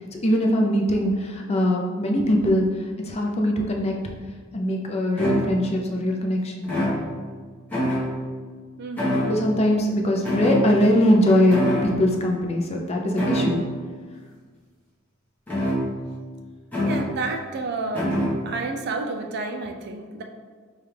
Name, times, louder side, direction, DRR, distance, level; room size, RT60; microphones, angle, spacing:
voice 1, 0.2-2.7 3.0-3.9 4.5-6.7 9.3-13.6, equal, 30° left, 1 dB, 0.4 m, -21 dB
sound 1, 4.5-4.6 5.2-5.9 6.6-7.4 7.7-8.4 9.0-9.7 10.2-11.1 11.5-12.0 13.2-13.8 15.5-16.2 16.7-17.2 17.9-18.5, equal, 10° left, 1.0 m, -25 dB
voice 2, 8.8-9.5 16.8-18.1 18.5-20.2, right 3 dB, 50° right, 3 dB, 0.4 m, -30 dB
5.0 x 2.3 x 3.2 m, 1.5 s
head